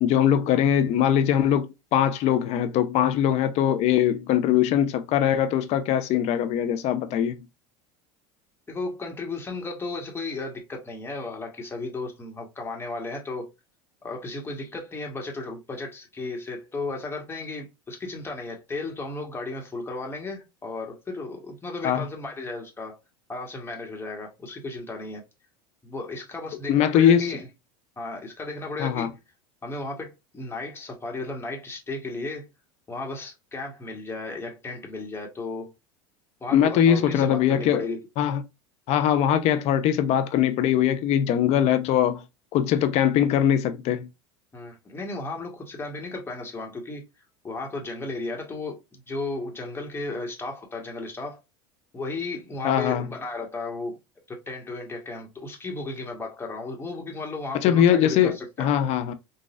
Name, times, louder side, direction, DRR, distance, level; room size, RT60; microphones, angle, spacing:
voice 1, 0.0-7.4 21.8-22.0 26.7-27.3 28.8-29.1 36.5-37.8 38.2-38.4 38.9-42.2 42.5-44.1 52.6-53.1 57.6-58.3 58.6-59.1, left 10 dB, 50° left, 0.6 m, -21 dB
voice 2, 8.7-13.5 14.0-23.0 23.3-25.2 25.8-27.5 28.0-29.2 29.6-32.5 32.9-35.7 36.4-38.0 44.5-47.1 47.4-51.4 51.9-54.0 54.3-58.7, left 3 dB, 15° left, 1.3 m, -34 dB
4.0 x 2.4 x 2.4 m
hypercardioid pair, 95°, 14 cm